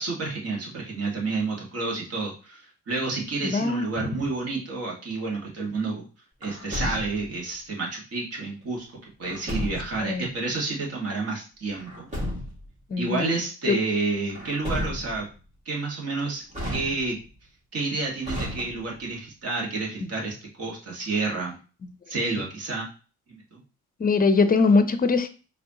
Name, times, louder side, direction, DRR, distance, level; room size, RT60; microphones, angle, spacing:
voice 1, 0.0-6.0 6.4-8.9 9.2-12.1 13.0-15.3 15.7-16.4 16.7-17.2 17.7-21.6 22.1-22.9 23.3-23.6, right 3 dB, 50° right, -2 dB, 1.9 m, -30 dB
voice 2, 3.4-3.8 10.0-10.2 12.9-13.4 13.7-13.8 24.0-25.3, left 4 dB, 30° left, 10 dB, 0.6 m, -21 dB
Truck, 6.4-7.4 9.2-10.1 11.7-12.7 14.3-15.3 16.5-17.4 18.2-19.1, equal, 25° right, 2.2 m, -33 dB
5.1 x 3.3 x 2.9 m, 0.36 s
cardioid pair, 90°, 30 cm